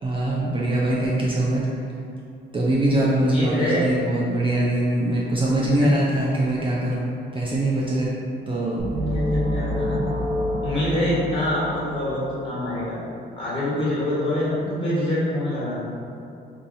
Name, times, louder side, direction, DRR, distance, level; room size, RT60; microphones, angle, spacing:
voice 1, 0.0-1.7 2.5-7.0 7.3-8.1 8.5-8.8, right 1 dB, 25° right, -5 dB, 0.4 m, -22 dB
voice 2, 3.1-3.9 5.8-5.9 9.1-10.0 10.6-13.0 13.4-15.7, left 1 dB, 25° left, -9 dB, 1.4 m, -25 dB
sound 1, 8.8-12.6, equal, 40° right, 0.8 m, -27 dB
2.7 x 2.4 x 4.0 m, 2.6 s
cardioid pair, 90°, 20 cm